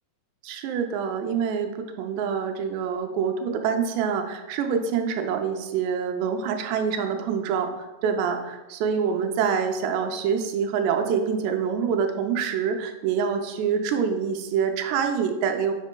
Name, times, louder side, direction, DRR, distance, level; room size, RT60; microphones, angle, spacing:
voice 1, 0.4-7.7 8.0-15.7, right 6 dB, 85° right, 4 dB, 2.8 m, -26 dB
7.9 x 6.2 x 2.2 m, 1.1 s
omnidirectional pair, 4.9 m